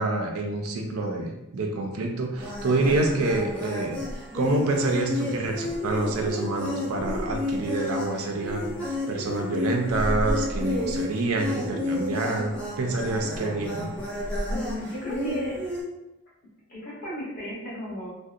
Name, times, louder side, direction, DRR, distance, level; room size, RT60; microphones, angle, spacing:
voice 1, 0.0-4.0 4.3-8.7 9.1-12.5 12.8-13.9, right 2 dB, 75° right, 2 dB, 0.4 m, -27 dB
sound 1, 2.4-15.8, left 1 dB, 5° left, 0.4 m, -31 dB
voice 2, 14.5-15.6 16.7-18.1, equal, 40° left, -7 dB, 1.0 m, -34 dB
2.6 x 2.1 x 2.3 m, 0.95 s
head